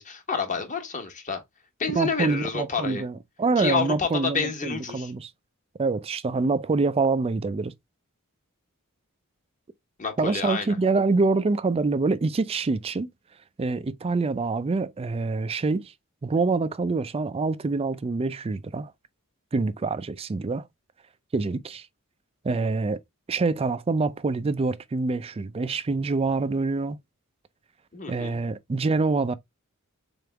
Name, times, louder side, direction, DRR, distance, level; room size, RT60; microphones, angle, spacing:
voice 1, 0.0-1.4 1.8-3.0 3.6-5.1 10.0-10.8 27.9-28.4, left 5 dB, 35° left, 1.2 m, -29 dB
voice 2, 2.0-5.3 5.8-7.7 10.2-13.1 13.6-15.9 16.2-18.9 19.5-20.7 21.3-21.9 22.4-23.0 23.3-27.0 28.1-29.3, right 3 dB, 25° right, 0.4 m, -26 dB
3.9 x 3.5 x 3.3 m
head